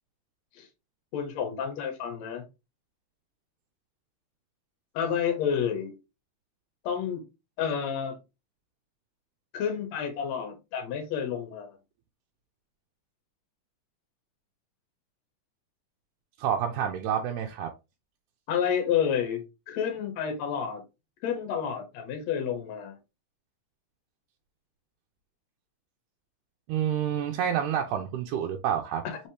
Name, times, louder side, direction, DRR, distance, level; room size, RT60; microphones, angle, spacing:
voice 1, 1.1-2.4 4.9-5.9 6.8-7.2 7.6-8.2 9.5-11.8 18.5-20.8 21.2-23.0 29.0-29.2, left 8 dB, 65° left, 2.2 m, -30 dB
voice 2, 16.4-17.7 26.7-29.0, right 9 dB, 90° right, 2.1 m, -28 dB
5.1 x 3.2 x 2.8 m
omnidirectional pair, 3.5 m